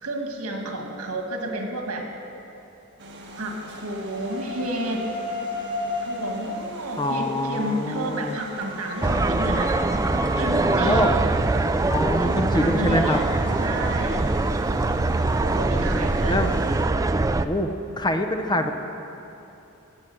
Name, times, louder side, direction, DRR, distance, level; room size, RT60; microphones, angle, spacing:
voice 1, 0.0-2.1 3.4-5.1 6.0-9.8 10.4-11.1 12.0-13.3 13.6-14.3 15.4-16.4, right 1 dB, 85° right, 2 dB, 1.8 m, -31 dB
sound 1, 3.0-16.8, equal, 55° right, 1.7 m, -42 dB
sound 2, 3.9-6.8 8.5-11.3 12.9-13.9, left 2 dB, 65° left, 3.1 m, -34 dB
voice 2, 7.0-8.4 10.5-11.1 11.9-13.2 15.5-16.5 17.4-18.7, left 1 dB, 20° left, 6 dB, 0.7 m, -25 dB
sound 3, 9.0-17.5, right 2 dB, 15° right, 0.3 m, -23 dB
17.5 x 7.3 x 7.7 m, 2.9 s
head